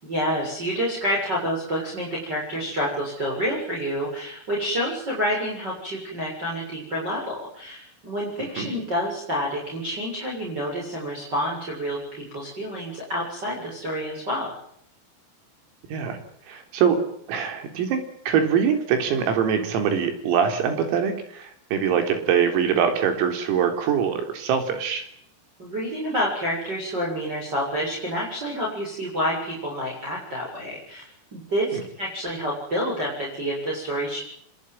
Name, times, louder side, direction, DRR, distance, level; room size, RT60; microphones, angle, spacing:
voice 1, 0.0-14.5 25.6-34.2, equal, 20° right, -3 dB, 7.5 m, -28 dB
voice 2, 16.5-17.0 17.3-25.1 31.7-31.8, right 7 dB, 90° right, 6 dB, 6.4 m, -23 dB
26.0 x 21.5 x 9.2 m, 0.71 s
omnidirectional pair, 5.9 m